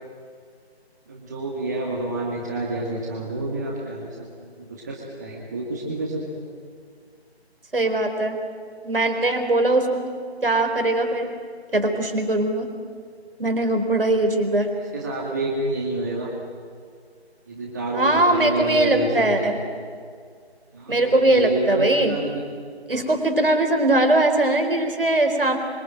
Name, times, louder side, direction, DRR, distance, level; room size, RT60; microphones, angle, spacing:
voice 1, 1.1-6.4 14.9-16.3 17.5-19.5 20.7-22.4 25.1-25.3, right 2 dB, 15° right, -2 dB, 2.0 m, -29 dB
voice 2, 7.7-8.4 8.8-10.2 10.4-11.3 11.7-12.7 13.4-14.7 17.9-19.6 20.9-22.2 22.9-25.6, right 2 dB, 55° right, 7 dB, 4.4 m, -20 dB
26.0 x 24.0 x 9.1 m, 2.1 s
figure-of-eight pair, 165°, 33 cm